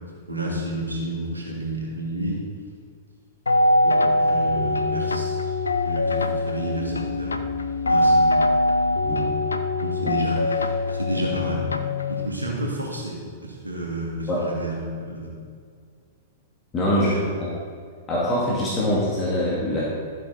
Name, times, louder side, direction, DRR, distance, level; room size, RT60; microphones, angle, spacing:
voice 1, 0.3-2.4 3.8-5.5 5.8-8.3 9.0-9.3 9.8-11.7 12.1-15.3 17.0-17.2, right 1 dB, 80° right, -3 dB, 2.5 m, -31 dB
sound 1, 3.5-12.3, left 2 dB, 75° left, 0.5 m, -22 dB
voice 2, 16.7-17.1 17.4-17.5 18.1-19.9, left 1 dB, 20° left, -6 dB, 2.4 m, -23 dB
13.5 x 7.7 x 4.2 m, 2.1 s
figure-of-eight pair, 100°, 0 cm